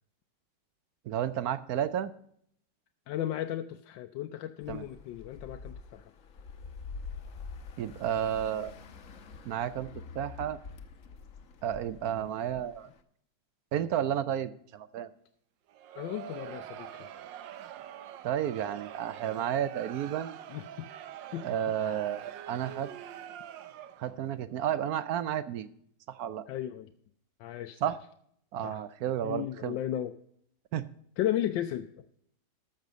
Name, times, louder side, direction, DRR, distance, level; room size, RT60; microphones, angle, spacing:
voice 1, 1.1-2.1 4.7-4.8 7.8-8.7 9.5-9.9 10.1-10.6 11.6-12.9 13.7-15.1 18.2-20.4 21.4-22.9 24.0-25.7 26.1-26.4 27.8-28.0 28.5-29.8 30.7-30.9, right 10 dB, 65° right, 15 dB, 1.0 m, -32 dB
voice 2, 3.1-6.0 16.0-17.1 20.5-20.9 21.3-22.0 26.5-26.9 27.4-27.8 28.6-28.8 29.2-30.2 31.2-32.0, left 12 dB, 85° left, 7 dB, 1.3 m, -35 dB
sound 1, 4.6-13.0, left 5 dB, 50° left, 1.2 m, -46 dB
Crowd, 15.7-24.2, right 10 dB, 85° right, 1.4 m, -45 dB
13.0 x 6.7 x 5.1 m, 0.68 s
omnidirectional pair, 2.0 m